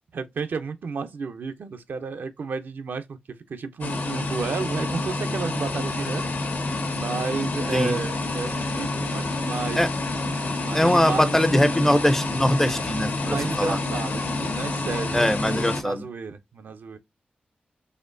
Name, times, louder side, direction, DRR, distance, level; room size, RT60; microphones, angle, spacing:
voice 1, 0.1-6.2 6.9-9.9 10.6-11.7 13.2-17.0, right 5 dB, 75° right, 0.5 m, -32 dB
sound 1, 3.8-15.8, left 2 dB, 75° left, 1.1 m, -28 dB
voice 2, 10.7-13.8 15.1-16.0, left 1 dB, 10° left, 0.5 m, -22 dB
4.2 x 2.9 x 2.6 m
wide cardioid pair, 95°, 3 cm